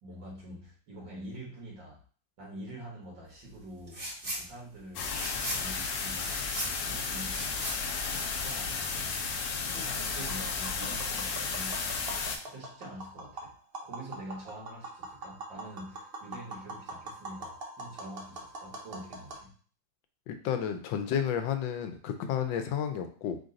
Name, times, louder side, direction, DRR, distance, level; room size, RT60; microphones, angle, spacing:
voice 1, 0.0-2.0 2.4-5.1 5.5-6.4 6.8-7.7 8.3-9.2 9.7-11.9 12.5-13.5 13.8-19.6, right 1 dB, 75° right, -3 dB, 2.2 m, -46 dB
sound 1, 3.9-4.4 4.8-8.7, right 1 dB, 30° right, 1.8 m, -39 dB
sound 2, 4.9-12.4, left 5 dB, 65° left, 1.0 m, -33 dB
Tap, 10.2-19.4, right 2 dB, 60° right, 0.6 m, -43 dB
voice 2, 20.3-23.4, left 8 dB, 85° left, 7 dB, 1.3 m, -32 dB
4.5 x 2.5 x 3.8 m, 0.42 s
omnidirectional pair, 2.0 m